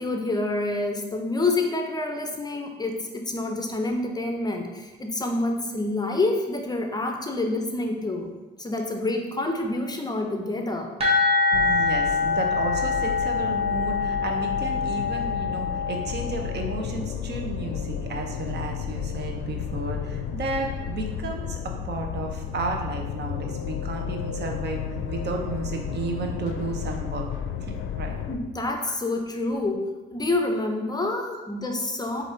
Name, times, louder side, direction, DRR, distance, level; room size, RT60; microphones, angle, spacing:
voice 1, 0.0-8.3 8.6-11.0 28.3-32.2, left 2 dB, 20° left, 3 dB, 0.5 m, -27 dB
sound 1, 11.0-16.6, left 4 dB, 30° right, 1.4 m, -25 dB
sound 2, 11.5-28.4, left 8 dB, 90° left, 0.4 m, -33 dB
voice 2, 11.5-27.3 27.6-28.2 28.8-28.9 31.3-31.4, right 3 dB, 55° right, 3 dB, 0.8 m, -33 dB
4.7 x 2.6 x 4.2 m, 1.2 s
cardioid pair, 90°, 20 cm